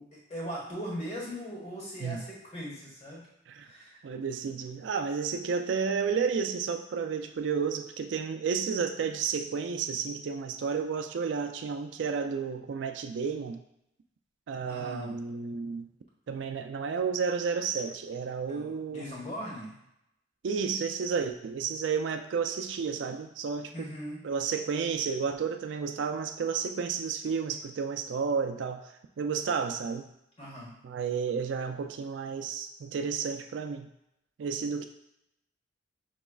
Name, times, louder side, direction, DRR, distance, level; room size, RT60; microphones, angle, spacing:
voice 1, 0.0-3.3 3.6-4.0 14.7-15.2 18.5-19.7 23.7-24.2 30.4-30.7, equal, 35° left, -4 dB, 1.3 m, -39 dB
voice 2, 4.0-13.6 14.5-15.9 16.3-19.1 20.4-23.9 24.2-28.9 29.2-30.0 30.8-33.9 34.4-34.8, right 6 dB, 70° right, 6 dB, 0.4 m, -31 dB
5.8 x 3.0 x 2.3 m, 0.81 s
head